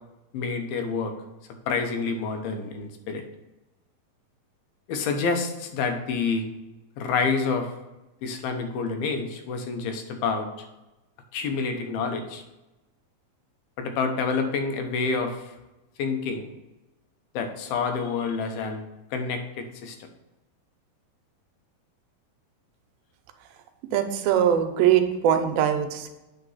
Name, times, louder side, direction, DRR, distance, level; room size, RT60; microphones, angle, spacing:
voice 1, 0.3-1.1 1.7-3.2 4.9-6.5 7.0-7.7 8.2-10.5 11.3-12.4 13.8-15.5 16.0-16.5 17.3-18.8 19.1-20.0, left 4 dB, 90° left, 5 dB, 2.8 m, -28 dB
voice 2, 23.9-26.1, right 9 dB, 85° right, 7 dB, 2.5 m, -22 dB
8.8 x 3.9 x 5.5 m, 1.0 s
omnidirectional pair, 4.2 m